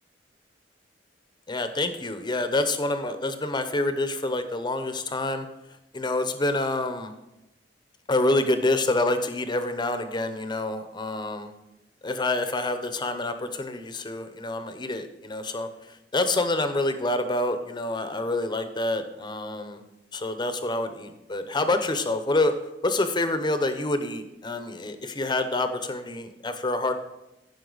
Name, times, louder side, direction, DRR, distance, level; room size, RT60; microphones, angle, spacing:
voice 1, 1.5-5.4 5.9-7.1 8.1-11.5 12.0-15.7 16.1-19.8 20.1-22.5 22.8-26.9, left 2 dB, 25° left, 9 dB, 0.7 m, -27 dB
14.5 x 5.4 x 4.0 m, 0.93 s
head